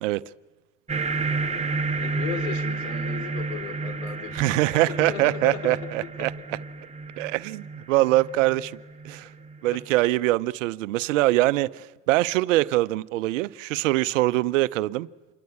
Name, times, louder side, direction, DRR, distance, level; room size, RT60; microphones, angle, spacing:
sound 1, 0.9-9.8, right 3 dB, 15° right, 1.9 m, -31 dB
voice 1, 2.0-6.3 9.7-9.8, left 7 dB, 85° left, 3.0 m, -36 dB
voice 2, 4.3-6.3 7.2-8.7 9.0-9.3 9.6-15.1, right 17 dB, 85° right, 0.8 m, -23 dB
27.5 x 22.0 x 8.5 m
hypercardioid pair, 75°, 37 cm